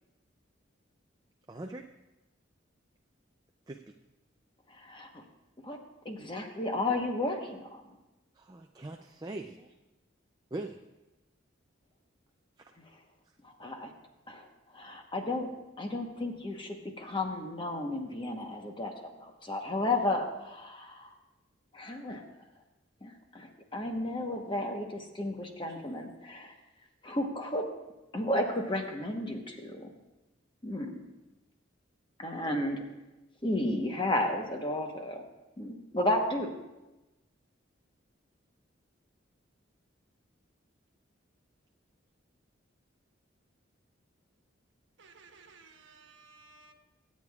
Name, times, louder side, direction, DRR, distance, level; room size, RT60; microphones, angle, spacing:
voice 1, 1.5-1.8 3.7-3.8 8.4-9.7 10.5-10.8 12.6-12.7, right 2 dB, 20° right, 4 dB, 0.4 m, -41 dB
voice 2, 4.7-5.2 5.6-5.8 6.0-7.8 13.6-13.9 14.3-14.5 14.7-15.5 15.8-21.1 21.7-22.2 23.0-26.5 27.0-27.7 28.1-29.9 30.6-30.9 32.2-32.8 33.4-35.2 35.6-36.6, left 1 dB, 25° left, 2 dB, 1.1 m, -33 dB
voice 3, 45.0-46.7, right 4 dB, 65° right, 3 dB, 1.3 m, -56 dB
25.0 x 8.4 x 2.4 m, 1.0 s
head